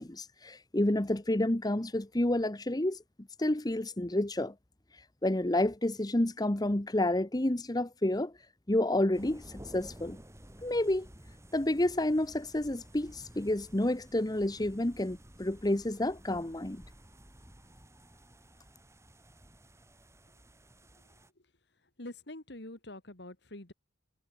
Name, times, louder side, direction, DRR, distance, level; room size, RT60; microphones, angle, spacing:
voice 1, 0.0-3.0 3.4-4.5 5.2-8.3 8.7-10.2 10.6-11.1 11.5-16.8, left 1 dB, 20° left, 1.1 m, -29 dB
sound 1, 9.1-21.3, equal, 15° right, 7.0 m, -53 dB
voice 2, 22.0-23.7, left 1 dB, 65° left, 2.7 m, -45 dB
head